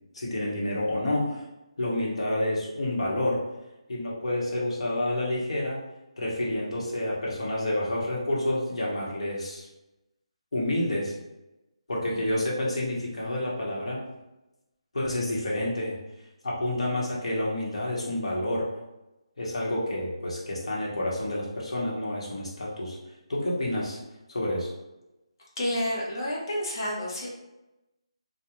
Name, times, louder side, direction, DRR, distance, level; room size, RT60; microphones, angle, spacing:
voice 1, 0.1-1.4 1.8-3.4 3.9-5.9 6.2-9.7 10.5-11.1 11.9-14.0 14.9-16.0 16.4-18.7 19.4-23.0 23.3-24.0 24.3-24.7, left 1 dB, 70° left, -4 dB, 1.0 m, -29 dB
voice 2, 12.1-12.4 25.6-27.3, left 1 dB, 35° left, -4 dB, 0.7 m, -30 dB
2.3 x 2.1 x 2.9 m, 0.97 s
hypercardioid pair, 175°, 3 cm